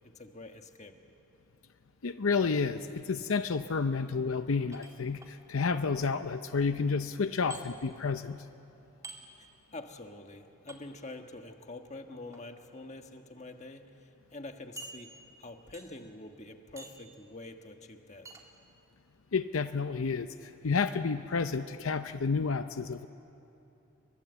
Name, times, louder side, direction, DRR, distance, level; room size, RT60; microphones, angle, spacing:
voice 1, 0.0-1.0 9.4-18.3, left 2 dB, 30° left, 5 dB, 1.5 m, -46 dB
voice 2, 2.0-8.5 19.3-23.1, left 4 dB, 75° left, 10 dB, 0.6 m, -30 dB
sound 1, 4.7-5.3 7.5-7.6 9.0-9.2 10.7-10.8 12.1-12.4 13.2-13.3 13.6-13.7 14.8-15.4 15.7-16.1 16.8-17.1 18.2-18.4, right 2 dB, 15° right, 2.2 m, -47 dB
29.5 x 23.0 x 8.1 m, 2.9 s
head